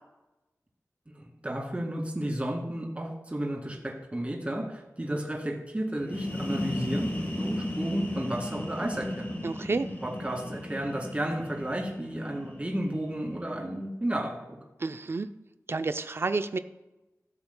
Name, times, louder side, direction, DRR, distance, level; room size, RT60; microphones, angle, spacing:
voice 1, 1.2-9.4 10.0-14.3, right 1 dB, 25° right, -2 dB, 2.2 m, -32 dB
sound 1, 6.0-13.6, left 1 dB, 35° left, 1.4 m, -36 dB
voice 2, 9.4-9.9 14.8-15.3 15.7-16.6, right 3 dB, 45° right, 11 dB, 0.4 m, -30 dB
15.0 x 7.0 x 2.2 m, 1.0 s
wide cardioid pair, 85°, 6 cm